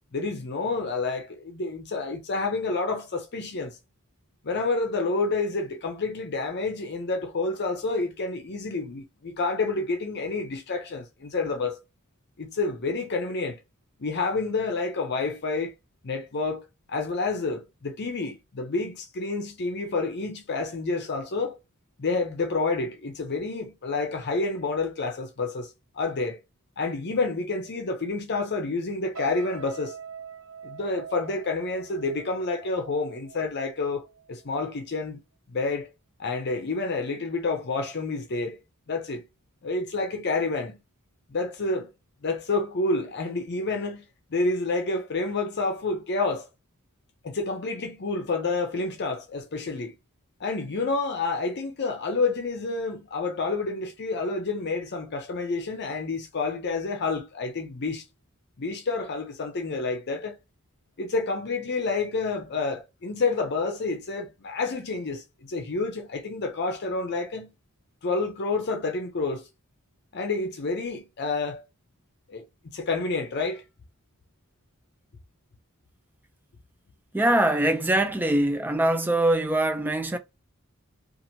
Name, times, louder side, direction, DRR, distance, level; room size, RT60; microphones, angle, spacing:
voice 1, 0.1-3.8 4.4-11.8 12.4-13.6 14.0-15.7 16.0-21.6 22.0-26.4 26.8-29.9 30.6-34.0 34.3-35.2 35.5-35.9 36.2-38.6 38.9-39.2 39.6-40.8 41.3-41.9 42.2-44.0 44.3-46.5 47.2-50.0 50.4-58.0 58.6-60.4 61.0-67.5 68.0-69.5 70.1-71.6 72.3-73.6, left 3 dB, 50° left, 0.6 m, -29 dB
sound 1, 29.1-34.4 34.8-35.1, right 7 dB, 65° right, 0.8 m, -44 dB
voice 2, 77.1-80.2, right 1 dB, 10° right, 0.4 m, -23 dB
2.8 x 2.5 x 2.7 m
head